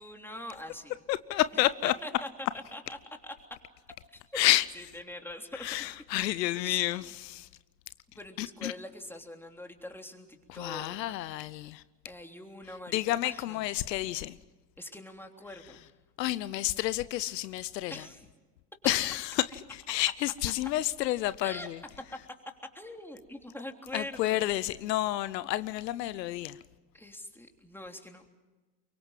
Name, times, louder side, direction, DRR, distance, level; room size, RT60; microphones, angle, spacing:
voice 1, 0.0-0.9 2.0-2.3 2.7-3.0 3.2-3.3 4.1-4.5 4.7-5.7 6.6-6.8 8.2-11.2 12.0-13.6 14.8-15.9 17.9-18.3 21.4-21.7 22.7-24.4 26.9-28.3, left 1 dB, 5° left, 3.3 m, -43 dB
voice 2, 1.1-1.9 4.3-4.7 5.5-7.5 8.4-8.7 10.5-11.8 12.9-14.4 16.2-18.1 18.8-21.8 23.9-26.6, left 15 dB, 85° left, 0.7 m, -30 dB
23.5 x 23.0 x 7.6 m
hypercardioid pair, 70°, 48 cm